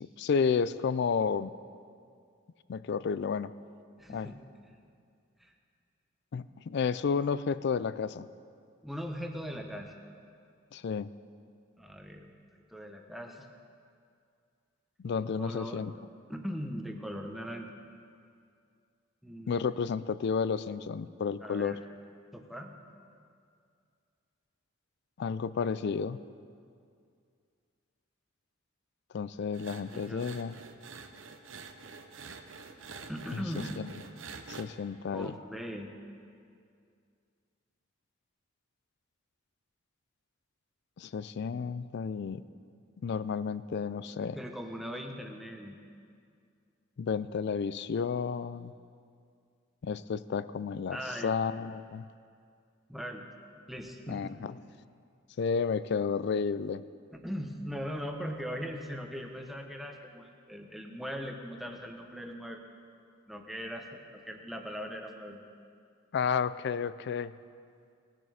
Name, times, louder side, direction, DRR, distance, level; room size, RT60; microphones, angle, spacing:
voice 1, 0.0-1.5 2.7-3.5 4.1-4.3 6.3-8.3 10.7-11.1 15.0-15.9 19.5-21.8 25.2-26.2 29.1-30.6 33.3-33.4 33.8-33.9 34.5-35.3 41.0-42.4 43.0-44.4 47.0-48.7 49.8-52.0 54.1-54.6 55.4-56.8 66.1-67.3, left 6 dB, 55° left, 16 dB, 0.3 m, -31 dB
voice 2, 4.0-4.4 5.4-5.5 8.8-9.9 11.8-12.3 12.7-13.5 15.2-15.8 16.3-17.7 19.2-19.7 21.4-21.8 22.3-22.7 29.9-30.3 33.1-33.8 35.1-35.9 44.3-45.8 50.9-51.4 52.9-53.2 53.7-54.3 57.1-62.6 63.3-65.4, equal, ahead, 2 dB, 0.9 m, -40 dB
sound 1, 29.5-34.7, right 4 dB, 70° right, 0.8 m, -47 dB
19.0 x 7.4 x 5.0 m, 2.3 s
head